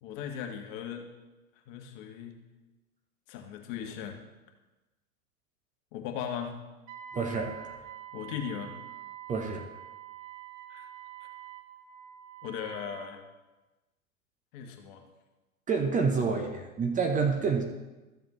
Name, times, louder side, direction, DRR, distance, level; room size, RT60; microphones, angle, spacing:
voice 1, 0.0-1.1 1.7-2.4 3.3-4.2 5.9-6.6 8.1-8.7 10.7-10.9 12.4-13.2 14.5-15.0, left 8 dB, 40° left, 4 dB, 1.5 m, -38 dB
Wind instrument woodwind instrument, 6.9-13.1, right 11 dB, 50° right, 1.7 m, -46 dB
voice 2, 7.1-7.8 9.3-9.7 15.7-17.6, right 5 dB, 15° right, 4 dB, 0.8 m, -28 dB
14.0 x 7.4 x 3.0 m, 1.1 s
figure-of-eight pair, 100°, 45 cm